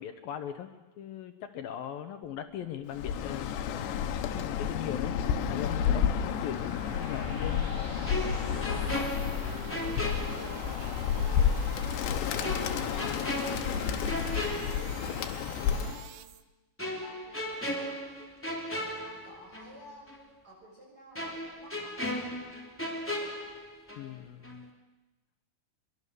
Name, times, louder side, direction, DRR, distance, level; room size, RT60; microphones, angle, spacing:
voice 1, 0.0-3.6 4.3-5.2 5.5-7.7 24.0-24.7, left 10 dB, 70° left, 8 dB, 2.5 m, -39 dB
sound 1, 2.2-16.4, right 11 dB, 75° right, 2.0 m, -48 dB
Bird, 2.9-16.1, left 8 dB, 85° left, 3.4 m, -31 dB
sound 2, 8.1-11.0 11.3-11.5 12.4-15.4 15.7-15.9 16.8-19.8 20.1-20.2 21.1-24.2 24.4-24.7, left 1 dB, 5° left, 2.2 m, -37 dB
voice 2, 9.7-13.1 13.5-15.1 15.7-16.3 17.0-17.7 19.0-22.0, equal, 20° right, -1 dB, 7.3 m, -53 dB
24.5 x 23.0 x 6.9 m, 1.1 s
omnidirectional pair, 4.9 m